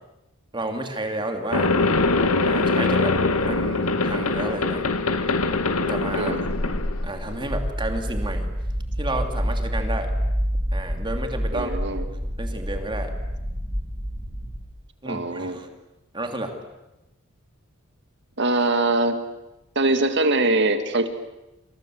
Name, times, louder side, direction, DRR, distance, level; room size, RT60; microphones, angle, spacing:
voice 1, 0.5-1.7 2.4-4.8 5.9-6.4 7.0-8.5 9.0-10.1 10.7-11.9 12.4-13.1 15.0-15.7 16.1-16.5, right 2 dB, 20° right, 5 dB, 3.0 m, -31 dB
sound 1, 1.5-7.5, left 3 dB, 85° left, 1.9 m, -23 dB
voice 2, 6.1-6.5 11.5-12.1 15.1-15.6 18.4-19.2 19.8-21.1, right 2 dB, 55° right, 8 dB, 2.1 m, -22 dB
sound 2, 7.5-14.6, equal, 5° left, 4.8 m, -27 dB
28.0 x 27.0 x 7.9 m, 0.98 s
head